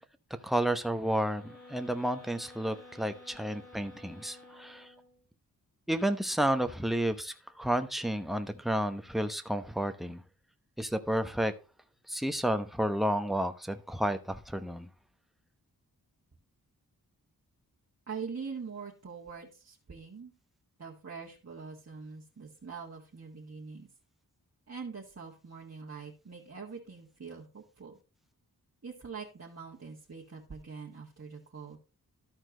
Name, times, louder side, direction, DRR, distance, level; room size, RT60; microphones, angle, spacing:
voice 1, 0.4-4.9 5.9-10.2 10.8-11.5 12.1-14.9, right 1 dB, ahead, 1.0 m, -31 dB
sound 1, 1.3-5.2, left 2 dB, 50° left, 4.2 m, -53 dB
voice 2, 18.1-20.3 20.8-23.9 24.7-28.0 28.8-31.8, right 5 dB, 40° right, 1.8 m, -43 dB
13.5 x 4.4 x 3.8 m
cardioid pair, 55°, 37 cm